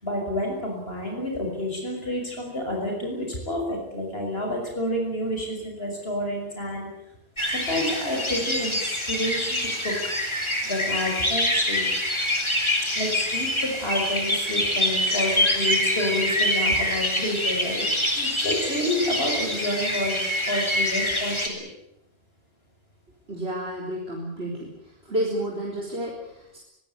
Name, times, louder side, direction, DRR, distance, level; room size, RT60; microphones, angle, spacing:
voice 1, 0.0-6.9 7.5-9.9 10.6-11.8 13.0-21.6, left 1 dB, 75° left, 1 dB, 6.4 m, -29 dB
sound 1, 7.4-21.5, left 1 dB, 25° left, 4.0 m, -25 dB
voice 2, 23.3-24.7 25.0-26.6, right 1 dB, 85° right, -1 dB, 4.3 m, -30 dB
23.5 x 17.5 x 9.5 m, 0.81 s
omnidirectional pair, 1.0 m